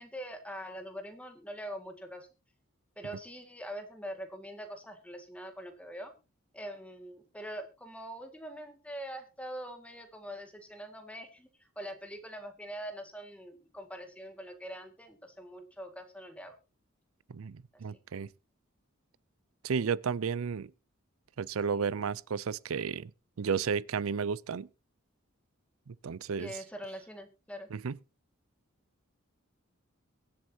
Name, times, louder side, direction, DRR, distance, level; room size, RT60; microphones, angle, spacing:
voice 1, 0.0-2.3 3.0-6.1 6.5-11.5 11.8-16.5 26.4-27.7, equal, 5° left, 1.9 m, -43 dB
voice 2, 17.3-18.3 19.6-20.7 21.4-23.1 23.4-24.7 25.9-26.5 27.7-27.9, right 6 dB, 80° right, 0.5 m, -33 dB
23.0 x 7.8 x 2.8 m
head